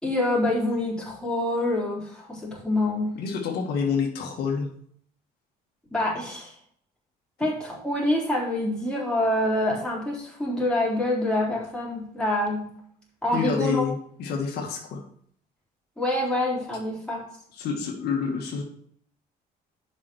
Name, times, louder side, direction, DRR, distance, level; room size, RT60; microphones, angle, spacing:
voice 1, 0.0-3.2 5.9-6.5 7.4-12.7 13.2-13.8 16.0-17.2, left 1 dB, 5° left, -5 dB, 4.0 m, -26 dB
voice 2, 3.2-4.7 13.3-15.0 17.6-18.6, left 6 dB, 75° left, 1 dB, 1.8 m, -28 dB
7.4 x 5.8 x 6.3 m, 0.63 s
cardioid pair, 110°, 17 cm